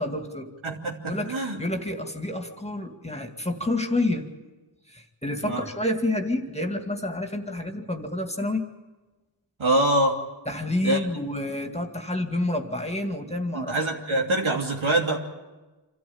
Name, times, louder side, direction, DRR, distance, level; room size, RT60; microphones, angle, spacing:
voice 1, 0.0-0.5 1.1-4.3 4.9-8.6 10.5-13.8, left 1 dB, 15° left, 4 dB, 2.3 m, -29 dB
voice 2, 0.6-1.6 5.4-5.6 9.6-10.2 10.8-11.0 13.5-15.2, right 1 dB, 80° right, 0 dB, 2.9 m, -24 dB
26.5 x 13.5 x 8.7 m, 1.2 s
wide cardioid pair, 50°, 47 cm